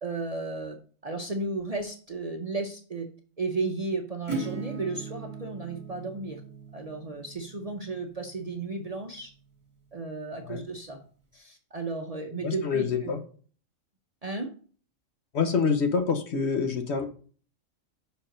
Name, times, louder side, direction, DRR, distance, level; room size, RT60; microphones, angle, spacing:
voice 1, 0.0-0.8 1.0-3.1 3.4-6.4 6.7-9.3 9.9-11.0 11.3-13.1 14.2-14.5, right 3 dB, 40° right, 3 dB, 0.6 m, -34 dB
Acoustic guitar / Strum, 4.3-9.8, right 4 dB, 25° right, 1.5 m, -40 dB
voice 2, 12.4-13.2 15.3-17.1, left 5 dB, 60° left, 7 dB, 1.0 m, -26 dB
5.6 x 4.6 x 5.0 m, 0.43 s
omnidirectional pair, 1.3 m